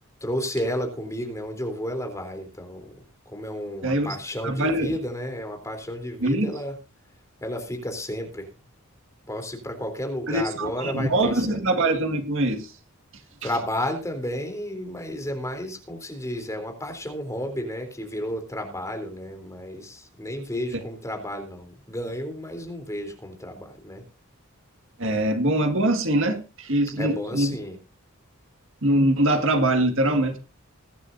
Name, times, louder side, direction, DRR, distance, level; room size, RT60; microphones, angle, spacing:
voice 1, 0.2-6.8 7.4-8.5 9.3-11.6 13.4-24.0 27.0-27.8, equal, 15° left, 4 dB, 3.4 m, -32 dB
voice 2, 3.8-4.2 4.4-5.0 6.2-6.5 10.3-12.7 20.7-20.8 25.0-27.6 28.8-30.4, right 1 dB, 60° right, 6 dB, 2.0 m, -23 dB
21.5 x 11.0 x 2.7 m, 0.30 s
head